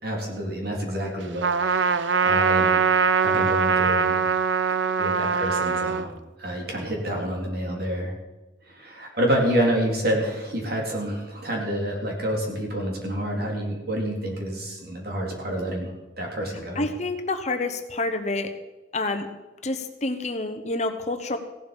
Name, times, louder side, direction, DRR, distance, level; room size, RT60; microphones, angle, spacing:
voice 1, 0.0-2.8 3.2-4.2 5.0-6.1 6.4-8.1 8.7-15.9 16.2-16.9, right 1 dB, 55° right, 0 dB, 3.7 m, -28 dB
Trumpet, 1.4-6.1, right 5 dB, 75° right, 0.6 m, -22 dB
voice 2, 16.7-18.5 18.9-19.3 19.6-21.4, left 2 dB, 35° left, 7 dB, 1.0 m, -28 dB
16.0 x 11.5 x 5.3 m, 1.1 s
head